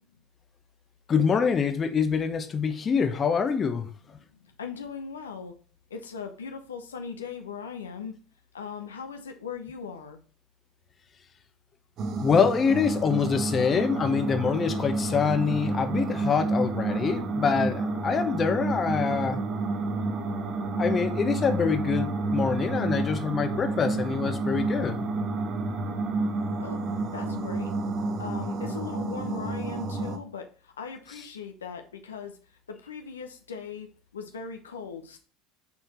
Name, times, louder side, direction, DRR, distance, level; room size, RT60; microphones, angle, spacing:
voice 1, 1.1-4.2 12.2-19.4 20.8-25.0, left 6 dB, 35° left, 8 dB, 0.9 m, -25 dB
voice 2, 4.3-5.5 5.9-8.1 8.5-10.2 26.6-26.8 27.1-27.7 28.2-32.4 32.7-33.9 34.1-35.2, left 6 dB, 85° left, 5 dB, 0.8 m, -39 dB
sound 1, 12.0-30.2, right 3 dB, 50° right, 1.1 m, -30 dB
5.7 x 4.4 x 4.3 m, 0.39 s
hypercardioid pair, 75°, 0 cm